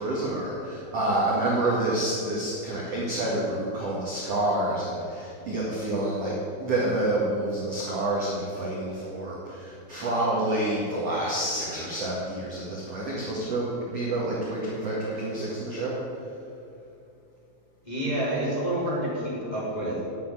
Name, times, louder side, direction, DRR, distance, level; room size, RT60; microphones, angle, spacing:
voice 1, 0.0-15.9, right 1 dB, 45° right, -5 dB, 2.2 m, -28 dB
voice 2, 17.8-20.0, right 1 dB, 10° left, -8 dB, 3.4 m, -28 dB
9.9 x 9.2 x 9.1 m, 2.6 s
omnidirectional pair, 5.3 m